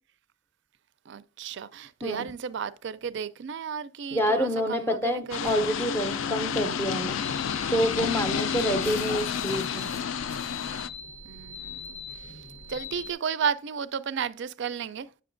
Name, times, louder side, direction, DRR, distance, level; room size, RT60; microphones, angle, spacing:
voice 1, 1.1-5.6 8.4-9.2 11.2-12.0 12.3-12.4 12.7-15.1, right 7 dB, 60° right, 0.4 m, -33 dB
voice 2, 4.1-7.2 7.7-9.9, equal, 10° left, 0.5 m, -27 dB
sound 1, 5.3-10.9, left 7 dB, 70° left, 0.3 m, -30 dB
sound 2, 7.2-13.1, left 4 dB, 85° left, 1.0 m, -41 dB
8.4 x 6.6 x 2.5 m
head